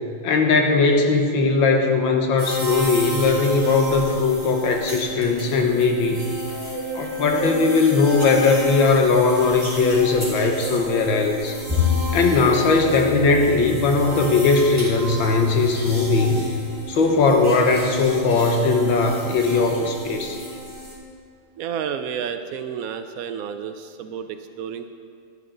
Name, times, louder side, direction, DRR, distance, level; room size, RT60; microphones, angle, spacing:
voice 1, 0.2-6.3 6.9-11.6 12.1-16.4 16.9-20.4, left 3 dB, 85° left, 3 dB, 1.8 m, -19 dB
sound 1, 2.4-20.9, equal, 15° left, 3.3 m, -32 dB
Bowed string instrument, 11.7-18.0, left 6 dB, 20° right, 1.2 m, -30 dB
voice 2, 21.6-24.9, right 8 dB, 85° right, 8 dB, 0.7 m, -31 dB
12.0 x 10.0 x 3.8 m, 2.1 s
omnidirectional pair, 2.1 m